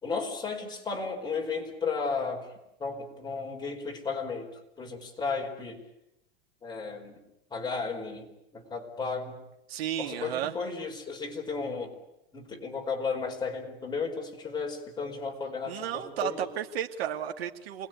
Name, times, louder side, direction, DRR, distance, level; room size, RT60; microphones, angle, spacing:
voice 1, 0.0-2.5 2.8-4.5 4.8-5.8 6.6-7.2 7.5-8.3 8.5-9.3 10.0-11.9 12.3-16.4, left 4 dB, 15° left, 1 dB, 4.8 m, -34 dB
voice 2, 9.7-10.5 15.7-17.9, right 10 dB, 85° right, 4 dB, 2.3 m, -33 dB
28.5 x 21.0 x 9.3 m, 0.86 s
supercardioid pair, 145°, 30 cm